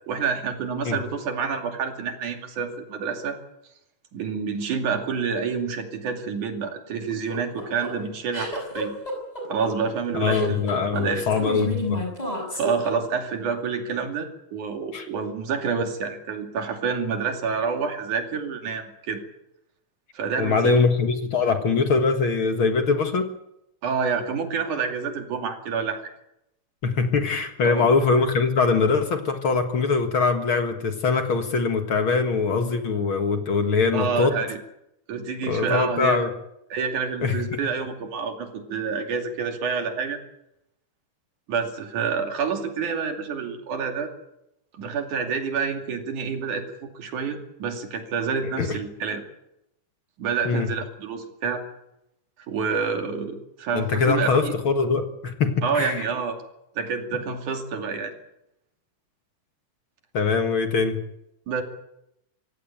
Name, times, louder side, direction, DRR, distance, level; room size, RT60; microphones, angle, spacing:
voice 1, 0.1-3.4 4.1-8.9 9.5-11.3 12.5-19.2 20.1-20.8 23.8-26.0 27.6-27.9 33.9-34.6 35.1-36.3 36.7-40.2 41.5-44.1 44.8-49.2 50.2-51.6 52.5-54.5 55.6-56.4 56.8-58.1 61.5-61.6, right 5 dB, 80° right, 4 dB, 4.1 m, -28 dB
sound 1, 7.1-13.4, equal, 10° left, 6.2 m, -31 dB
voice 2, 10.1-12.0 14.9-15.1 20.4-23.3 26.8-34.4 35.5-36.3 37.2-37.4 48.6-48.7 50.5-50.7 53.7-56.0 60.1-61.0, left 4 dB, 50° left, 6 dB, 2.1 m, -22 dB
25.0 x 16.5 x 8.9 m, 0.84 s
omnidirectional pair, 3.4 m